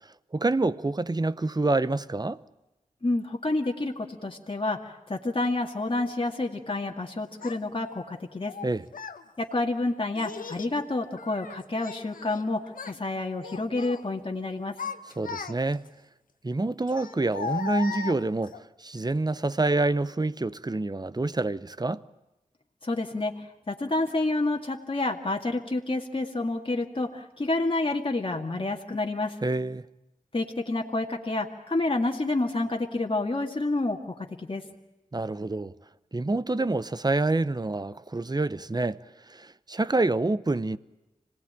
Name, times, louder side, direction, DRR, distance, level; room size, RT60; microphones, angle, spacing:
voice 1, 0.3-2.4 8.6-8.8 15.2-15.9 16.4-22.0 29.4-29.8 35.1-35.7 36.1-39.0 39.3-40.8, right 2 dB, 30° right, 0.8 m, -27 dB
voice 2, 3.0-8.5 9.4-14.7 22.8-29.4 30.3-34.6, left 2 dB, 40° left, 2.2 m, -29 dB
Child speech kid speaking, 7.4-7.6 8.5-9.2 10.2-10.8 11.2-12.4 12.7-13.0 13.4-14.0 14.5-15.9 16.9-18.6, left 6 dB, 85° left, 0.9 m, -37 dB
26.0 x 18.5 x 9.0 m
cardioid pair, 40°, 14 cm